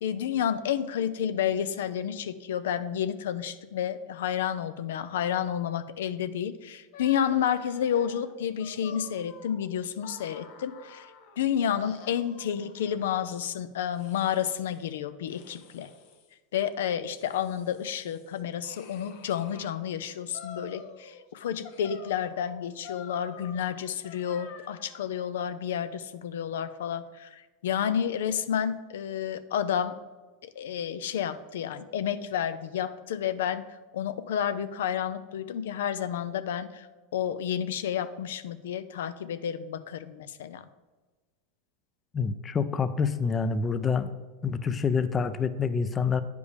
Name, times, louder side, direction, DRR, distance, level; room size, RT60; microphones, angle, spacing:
voice 1, 0.0-11.1 11.4-15.9 16.5-29.9 30.4-33.6 33.9-36.9 37.1-40.6, left 9 dB, 85° left, 12 dB, 0.4 m, -30 dB
sound 1, 6.9-11.4 11.8-13.3 13.9-14.9 15.3-16.3 16.9-19.7 20.3-21.3 21.6-25.1, left 6 dB, 65° left, 0.9 m, -49 dB
voice 2, 42.1-44.1 44.4-46.2, left 5 dB, 25° left, 11 dB, 0.4 m, -27 dB
9.6 x 5.1 x 3.3 m, 1.3 s
supercardioid pair, 120°, 0 cm